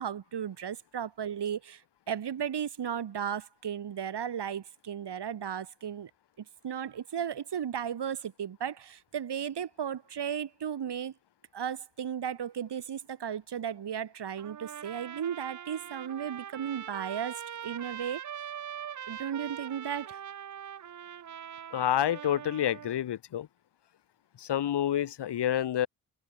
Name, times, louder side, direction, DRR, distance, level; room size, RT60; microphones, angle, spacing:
voice 1, 0.0-6.1 6.4-11.1 11.5-18.2 19.1-20.2, right 8 dB, 55° right, 2.8 m, -35 dB
Trumpet, 14.4-23.0, right 9 dB, 35° right, 0.8 m, -42 dB
voice 2, 21.7-23.5 24.4-25.9, left 11 dB, 55° left, 1.5 m, -28 dB
open air
hypercardioid pair, 40°, 49 cm